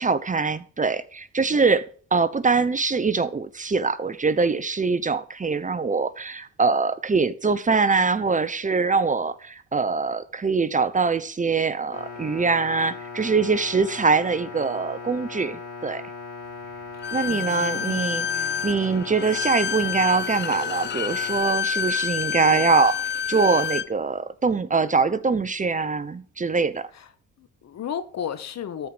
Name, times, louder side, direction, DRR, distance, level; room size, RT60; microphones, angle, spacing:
voice 1, 0.0-1.8 2.1-16.0 17.1-23.0 23.3-26.9, right 4 dB, 25° right, 0.9 m, -23 dB
sound 1, 11.9-21.4, left 4 dB, 80° left, 4.6 m, -38 dB
Bowed string instrument, 17.0-23.9, left 7 dB, 35° left, 0.5 m, -28 dB
voice 2, 17.3-18.6 21.9-22.0 22.4-22.8 27.4-28.9, left 8 dB, 60° left, 1.4 m, -35 dB
13.0 x 5.0 x 7.9 m
cardioid pair, 90°, 30 cm